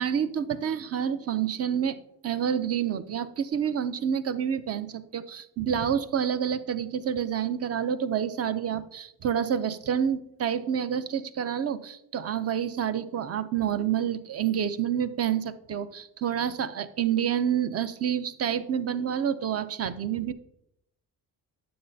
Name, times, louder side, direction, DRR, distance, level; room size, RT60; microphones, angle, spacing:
voice 1, 0.0-20.3, right 8 dB, 45° right, 12 dB, 0.6 m, -28 dB
9.4 x 7.7 x 2.7 m, 0.77 s
cardioid pair, 115°, 35 cm